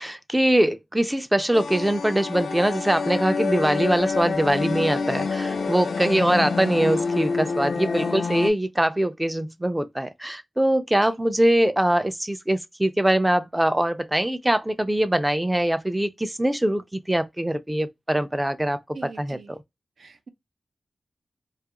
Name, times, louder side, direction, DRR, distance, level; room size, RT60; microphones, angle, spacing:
voice 1, 0.0-18.8 19.2-19.6, right 1 dB, 10° right, 0.3 m, -23 dB
sound 1, 1.5-8.5, left 4 dB, 85° left, 0.3 m, -27 dB
voice 2, 18.9-19.5 20.0-20.3, right 4 dB, 85° right, 0.5 m, -42 dB
2.3 x 2.2 x 2.8 m
wide cardioid pair, 95°, 0 cm